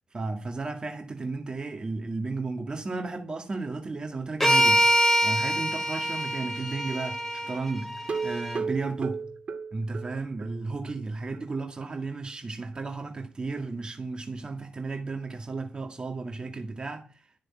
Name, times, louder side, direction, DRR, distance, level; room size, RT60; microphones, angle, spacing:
voice 1, 0.1-4.9 5.2-7.9 8.2-9.3 9.7-17.3, right 3 dB, 30° right, 2.1 m, -34 dB
sound 1, 4.4-8.6, equal, 10° left, 2.6 m, -25 dB
sound 2, 8.0-10.6 10.9-11.0 11.3-11.4 11.8-11.9, right 5 dB, 50° right, 2.0 m, -34 dB
13.0 x 6.8 x 8.5 m
wide cardioid pair, 120°, 3 cm